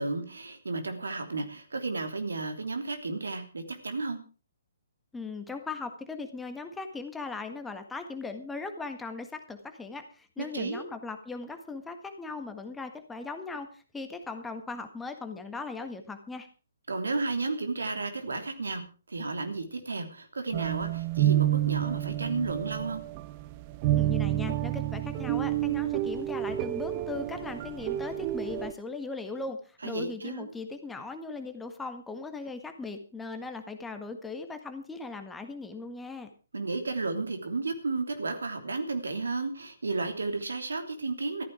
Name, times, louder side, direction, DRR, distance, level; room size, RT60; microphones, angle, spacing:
voice 1, 0.0-4.2 10.4-10.8 16.9-23.0 29.8-30.5 36.5-41.4, right 3 dB, 70° right, 7 dB, 3.1 m, -33 dB
voice 2, 5.1-16.5 24.0-36.3, left 3 dB, 5° left, 6 dB, 1.6 m, -38 dB
sound 1, 20.5-28.7, right 13 dB, 30° right, 0.8 m, -29 dB
14.5 x 13.5 x 4.9 m, 0.36 s
figure-of-eight pair, 125°, 0 cm